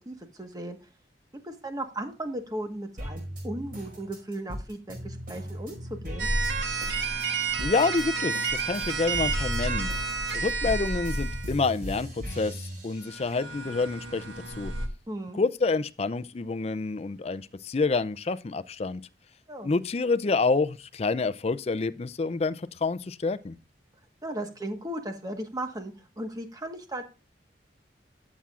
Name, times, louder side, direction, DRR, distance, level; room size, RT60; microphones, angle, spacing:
voice 1, 0.0-0.8 1.4-6.3 15.1-15.4 19.5-19.7 24.2-27.0, right 1 dB, 20° right, 1.4 m, -36 dB
sound 1, 3.0-8.1 8.3-13.5 14.0-15.0, equal, 50° right, 5.2 m, -39 dB
sound 2, 6.2-11.5 13.0-14.9, right 3 dB, 90° right, 1.4 m, -30 dB
voice 2, 7.6-9.9 10.3-12.6 12.8-14.2 14.6-14.7 15.3-19.0 19.6-23.6, left 4 dB, 35° left, 0.4 m, -28 dB
14.0 x 7.3 x 2.5 m
head